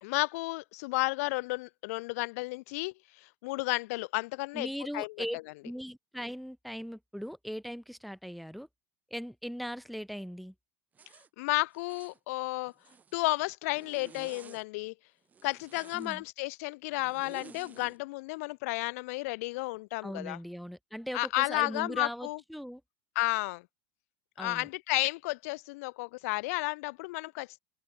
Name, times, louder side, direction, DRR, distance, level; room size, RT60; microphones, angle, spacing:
voice 1, 0.0-4.7 4.9-5.4 11.4-12.7 13.1-14.9 15.4-20.4 21.1-22.4 23.2-23.6 24.4-27.6, left 23 dB, 70° left, 0.6 m, -32 dB
voice 2, 4.5-5.4 5.6-8.7 9.1-10.5 15.9-16.2 20.0-22.8 24.4-24.7, equal, ahead, 2.0 m, -39 dB
Zipper (clothing), 10.9-11.3 11.7-12.2 12.7-13.4 13.7-14.6 15.3-16.2 17.0-18.0, right 6 dB, 20° right, 1.4 m, -53 dB
open air
supercardioid pair, 150°, 8 cm